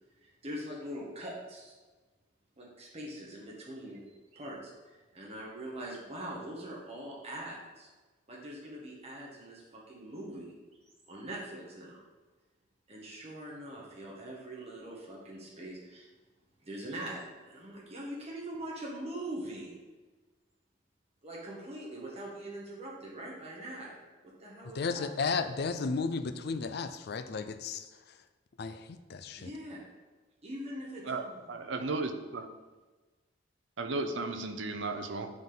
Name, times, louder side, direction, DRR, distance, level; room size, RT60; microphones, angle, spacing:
voice 1, 0.2-1.7 2.6-7.9 8.3-10.5 11.1-12.0 12.9-16.1 16.6-19.8 21.2-24.0 24.4-25.1 29.4-29.8 30.4-31.7, right 1 dB, 30° right, -4 dB, 1.3 m, -42 dB
voice 2, 24.8-27.9 28.6-29.5, left 4 dB, 55° left, 10 dB, 0.4 m, -34 dB
voice 3, 31.0-32.5 33.8-35.3, right 3 dB, 60° right, 7 dB, 0.6 m, -35 dB
9.5 x 3.6 x 3.8 m, 1.3 s
head